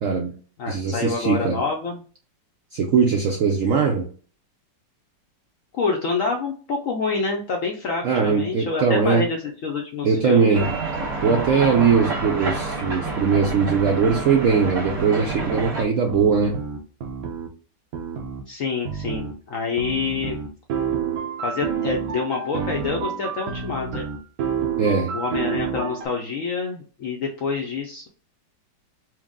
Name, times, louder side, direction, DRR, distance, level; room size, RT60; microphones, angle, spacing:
voice 1, 0.0-0.3 0.7-1.6 2.7-4.1 8.0-9.3 10.0-10.7 11.2-16.6 24.8-25.2, right 5 dB, 75° right, 2 dB, 0.7 m, -20 dB
voice 2, 0.6-2.0 5.7-9.4 9.6-10.7 18.5-20.4 21.4-24.1 24.9-28.1, left 4 dB, 70° left, 2 dB, 0.8 m, -27 dB
sound 1, 10.5-15.8, right 3 dB, 40° right, 1.4 m, -28 dB
sound 2, 15.5-15.6 16.1-17.5 17.9-18.4 18.9-19.3 19.8-26.1, right 7 dB, 60° right, 1.1 m, -29 dB
4.6 x 2.1 x 3.5 m, 0.40 s
omnidirectional pair, 2.0 m